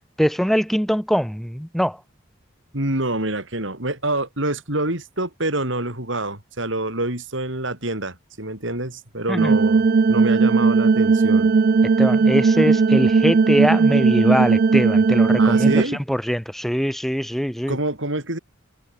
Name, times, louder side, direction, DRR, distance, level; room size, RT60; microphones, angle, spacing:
voice 1, 0.2-2.0 9.3-9.5 12.0-15.8 16.1-17.8, equal, ahead, 3.3 m, -22 dB
voice 2, 2.7-11.5 15.4-16.0 17.7-18.4, right 2 dB, 65° right, 5.8 m, -26 dB
sound 1, 9.4-15.8, right 4 dB, 45° right, 0.4 m, -17 dB
head